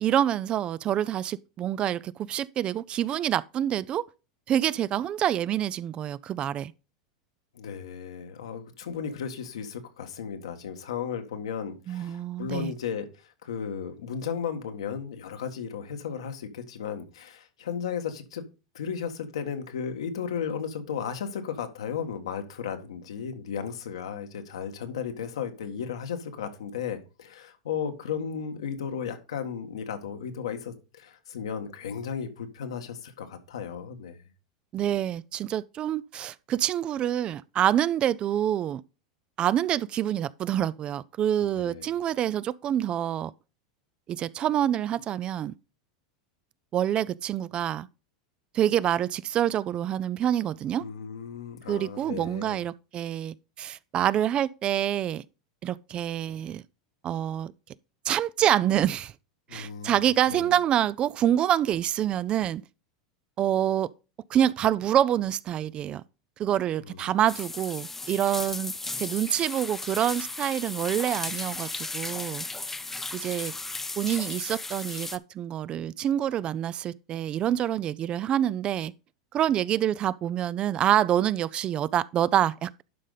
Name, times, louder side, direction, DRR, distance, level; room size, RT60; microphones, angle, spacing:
voice 1, 0.0-4.0 4.5-6.7 11.9-12.7 34.7-38.8 39.4-43.3 44.1-45.5 46.7-47.9 48.5-50.8 51.7-55.2 55.6-56.6 57.0-57.5 58.0-59.1 59.5-62.6 63.4-63.9 64.3-66.0 66.4-68.7 69.0-72.5 73.1-73.5 74.0-78.9 79.3-82.8, right 11 dB, 35° right, 0.4 m, -26 dB
voice 2, 7.5-18.4 18.7-34.3 41.4-41.9 50.8-52.6 59.5-60.5 66.8-67.0, left 7 dB, 85° left, 1.6 m, -35 dB
sound 1, 67.3-75.2, left 3 dB, 10° left, 0.6 m, -35 dB
11.5 x 5.1 x 4.0 m
hypercardioid pair, 105°, 3 cm